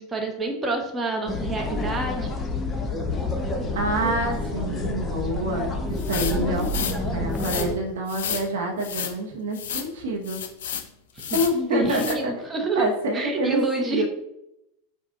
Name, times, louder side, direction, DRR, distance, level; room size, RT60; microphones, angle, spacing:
voice 1, 0.0-2.2 11.2-11.4 11.7-12.8 13.1-14.0, right 3 dB, 20° right, 2 dB, 1.0 m, -27 dB
sound 1, 1.3-7.7, left 2 dB, 20° left, 0.9 m, -28 dB
voice 2, 3.7-10.4 11.3-12.3 12.7-14.0, right 1 dB, 70° right, 1 dB, 1.0 m, -27 dB
sound 2, 6.0-7.0 7.3-7.7 8.1-8.5 8.8-9.1 9.5-9.9 10.3-10.9 11.2-11.6 11.9-12.2, left 8 dB, 70° left, 0.5 m, -31 dB
5.2 x 2.4 x 3.8 m, 0.82 s
hypercardioid pair, 85°, 0 cm